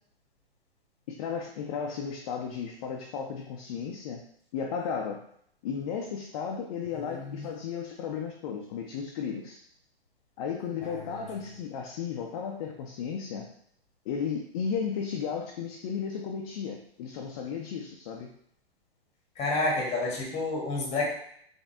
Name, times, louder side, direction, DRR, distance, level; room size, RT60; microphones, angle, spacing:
voice 1, 1.1-4.2 4.5-5.2 5.6-9.6 10.4-13.5 14.1-18.3, left 6 dB, 35° left, 1 dB, 0.4 m, -34 dB
voice 2, 7.0-7.5 10.8-11.5 19.4-21.0, left 2 dB, 20° left, -1 dB, 1.3 m, -30 dB
3.8 x 3.5 x 2.6 m, 0.67 s
hypercardioid pair, 135°, 31 cm